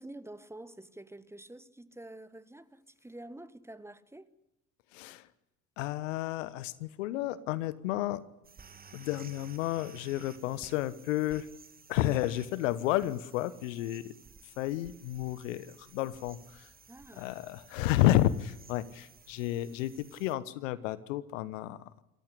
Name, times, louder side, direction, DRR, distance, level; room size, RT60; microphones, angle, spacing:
voice 1, 0.0-4.3 16.9-17.3, right 1 dB, 5° right, 1.3 m, -48 dB
voice 2, 4.9-5.3 5.8-8.2 8.9-11.5 11.9-14.1 14.4-16.7 17.2-21.9, left 14 dB, 65° left, 1.2 m, -31 dB
sound 1, 8.4-20.4, right 5 dB, 20° right, 2.1 m, -55 dB
27.0 x 15.0 x 10.0 m
figure-of-eight pair, 65°, 41 cm